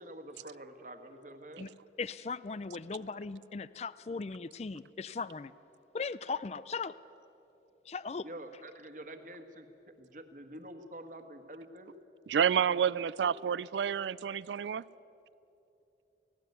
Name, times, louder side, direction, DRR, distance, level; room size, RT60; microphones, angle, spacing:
voice 1, 0.0-1.7 8.2-9.7 10.0-11.9 12.7-12.8 13.2-13.4, right 1 dB, 45° right, 8 dB, 1.5 m, -47 dB
voice 2, 2.0-5.5 5.9-7.0 7.9-8.3, left 4 dB, 35° left, 18 dB, 0.4 m, -38 dB
voice 3, 12.3-14.8, right 8 dB, 85° right, 19 dB, 0.4 m, -29 dB
17.5 x 17.0 x 9.3 m, 2.9 s
head